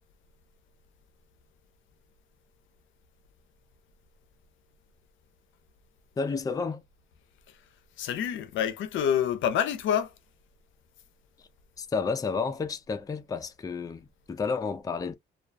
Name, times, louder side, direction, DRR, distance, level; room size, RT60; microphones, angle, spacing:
voice 1, 6.2-6.8 11.8-15.1, left 5 dB, 20° left, 0.4 m, -31 dB
voice 2, 8.0-10.2, left 9 dB, 75° left, 0.5 m, -28 dB
2.3 x 2.1 x 2.5 m
cardioid pair, 90°, 20 cm